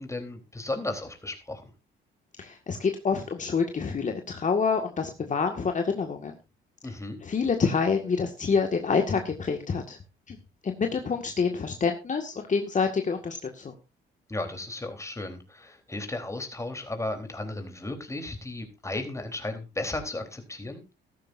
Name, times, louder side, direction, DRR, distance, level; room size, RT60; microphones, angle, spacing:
voice 1, 0.0-1.7 6.8-7.2 14.3-20.8, left 2 dB, 15° left, 6 dB, 3.8 m, -35 dB
voice 2, 2.4-6.3 7.2-10.0 10.3-10.4 10.6-13.7, left 5 dB, 40° left, 4 dB, 2.0 m, -27 dB
15.5 x 13.0 x 2.7 m, 0.28 s
cardioid pair, 90°, 20 cm